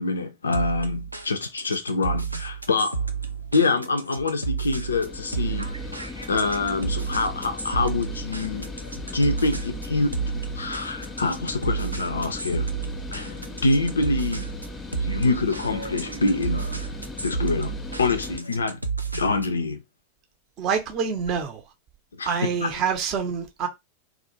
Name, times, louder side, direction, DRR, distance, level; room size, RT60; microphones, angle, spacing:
voice 1, 0.0-3.0 3.5-5.7 6.3-8.7 9.1-12.7 13.1-13.3 13.6-14.5 15.1-16.7 17.2-18.8 19.1-19.8 22.1-22.7, left 3 dB, 70° left, 0.3 m, -25 dB
sound 1, 0.5-19.6, right 5 dB, 85° right, 0.4 m, -31 dB
sound 2, 4.8-18.4, left 3 dB, 15° left, 0.5 m, -38 dB
voice 2, 20.6-21.6 22.3-23.7, right 6 dB, 35° right, 0.5 m, -26 dB
2.3 x 2.0 x 2.9 m
figure-of-eight pair, 90°, 0 cm